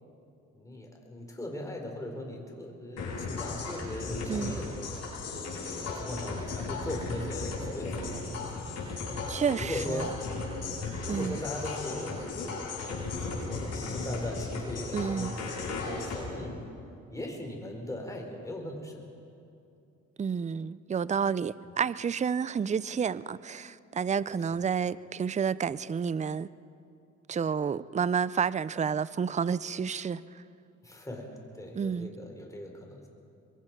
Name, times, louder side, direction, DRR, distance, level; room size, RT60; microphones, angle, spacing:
voice 1, 0.5-5.0 5.8-8.5 9.6-10.2 11.0-12.6 12.8-15.5 15.8-16.5 17.1-19.0 30.8-33.1, left 1 dB, 10° left, 2 dB, 4.3 m, -39 dB
sound 1, 3.0-16.2, left 3 dB, 60° left, 7.5 m, -36 dB
voice 2, 9.3-10.1 11.1-11.4 14.9-15.3 20.2-26.5 27.3-30.4 31.7-32.1, right 6 dB, 25° right, 18 dB, 0.5 m, -30 dB
24.5 x 22.0 x 6.0 m, 2.6 s
cardioid pair, 90°, 30 cm